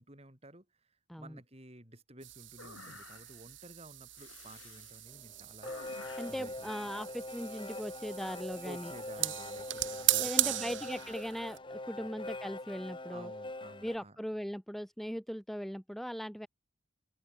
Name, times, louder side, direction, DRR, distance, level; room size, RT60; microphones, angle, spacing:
voice 1, 0.0-6.7 8.6-10.9 12.0-12.1 13.1-14.2, right 1 dB, 30° right, 5.8 m, -53 dB
sound 1, 2.2-11.6, right 16 dB, 70° right, 1.8 m, -37 dB
sound 2, 2.6-3.5 4.1-5.0 5.6-6.4, left 4 dB, 85° left, 5.5 m, -52 dB
sound 3, 5.1-14.0, left 2 dB, 25° left, 1.6 m, -43 dB
voice 2, 6.2-8.9 9.2-9.3 10.2-13.3 13.8-16.5, equal, ahead, 1.0 m, -39 dB
open air
head